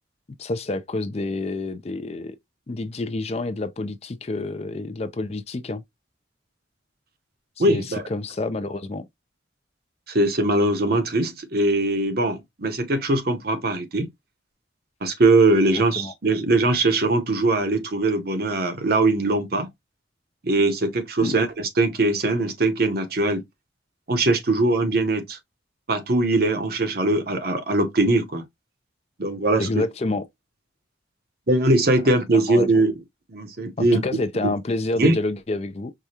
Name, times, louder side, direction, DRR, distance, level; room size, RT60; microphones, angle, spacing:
voice 1, 0.4-2.4 2.7-5.8 7.6-9.1 15.7-16.1 21.2-21.3 29.6-30.2 32.3-32.8 33.8-35.9, left 2 dB, 35° left, 0.4 m, -28 dB
voice 2, 7.6-8.0 10.1-14.1 15.0-19.7 20.4-23.4 24.1-25.4 25.9-28.4 29.2-29.7 31.5-32.9 33.3-34.0 34.4-34.5 35.0-35.2, right 2 dB, 50° right, 0.9 m, -21 dB
4.8 x 2.3 x 2.8 m
head